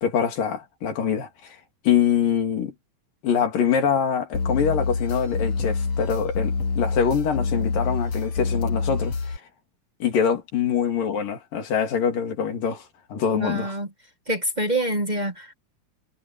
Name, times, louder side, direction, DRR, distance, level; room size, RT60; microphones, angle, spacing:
voice 1, 0.0-1.6 1.8-2.7 3.2-9.4 10.0-12.8 13.1-13.7, left 7 dB, 90° left, 4.6 m, -24 dB
sound 1, 4.3-9.4, left 4 dB, 55° left, 3.2 m, -26 dB
voice 2, 13.3-13.9 14.3-15.5, right 1 dB, 40° right, 0.6 m, -26 dB
omnidirectional pair, 3.8 m